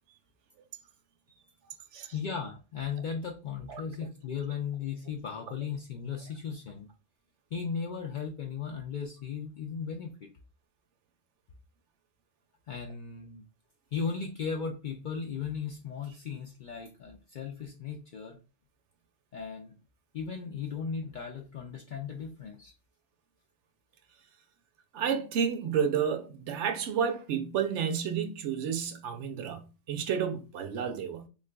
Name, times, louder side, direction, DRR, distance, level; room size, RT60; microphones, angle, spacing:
voice 1, 2.1-6.9 7.5-10.3 12.7-13.4 13.9-18.4 19.3-19.7 20.1-22.7, left 6 dB, 60° left, 0.5 m, -36 dB
voice 2, 24.9-31.3, right 7 dB, 75° right, 0.9 m, -31 dB
3.7 x 3.1 x 2.2 m
omnidirectional pair, 1.3 m